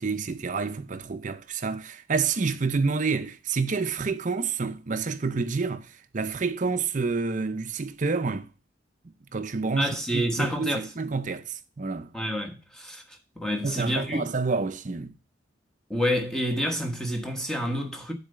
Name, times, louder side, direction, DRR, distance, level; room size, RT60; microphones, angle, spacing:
voice 1, 0.0-8.5 9.3-12.1 13.6-15.1, right 4 dB, 40° right, 0.6 m, -28 dB
voice 2, 9.8-10.9 12.1-13.0 13.4-14.2 15.9-18.1, equal, 5° left, 1.1 m, -28 dB
7.1 x 4.0 x 6.6 m
head